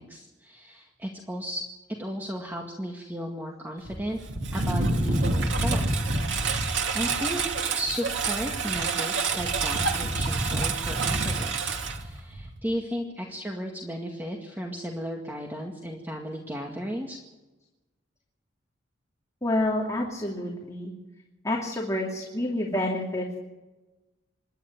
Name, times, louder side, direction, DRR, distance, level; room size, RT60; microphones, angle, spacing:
voice 1, 0.0-1.6 2.0-4.2 4.5-6.0 6.9-7.4 7.8-17.2, equal, 10° right, 0 dB, 2.0 m, -34 dB
Engine, 3.9-12.6, right 3 dB, 80° right, 2.4 m, -27 dB
voice 2, 19.4-20.9 21.4-23.4, left 1 dB, 20° left, -2 dB, 2.9 m, -28 dB
26.5 x 11.5 x 9.4 m, 1.1 s
head